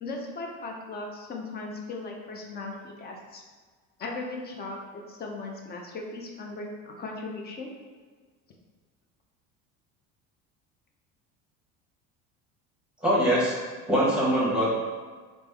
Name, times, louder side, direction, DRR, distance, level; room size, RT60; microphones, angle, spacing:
voice 1, 0.0-3.4 4.0-7.7, left 3 dB, 30° left, 1 dB, 0.5 m, -37 dB
voice 2, 13.0-13.6 13.9-14.7, equal, 5° right, -5 dB, 1.0 m, -22 dB
3.2 x 2.1 x 3.3 m, 1.5 s
supercardioid pair, 110°, 30 cm